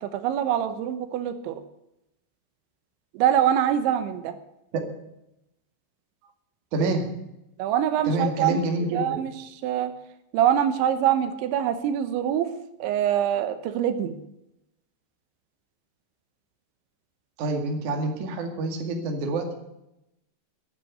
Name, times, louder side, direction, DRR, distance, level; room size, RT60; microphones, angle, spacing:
voice 1, 0.0-1.6 3.1-4.3 7.6-8.6 8.9-9.9 10.3-12.5 12.8-14.2, right 10 dB, 90° right, 9 dB, 3.4 m, -24 dB
voice 2, 6.7-7.0 8.0-9.1 17.4-19.5, right 2 dB, 50° right, 3 dB, 3.0 m, -27 dB
11.0 x 9.4 x 9.5 m, 0.87 s
omnidirectional pair, 5.2 m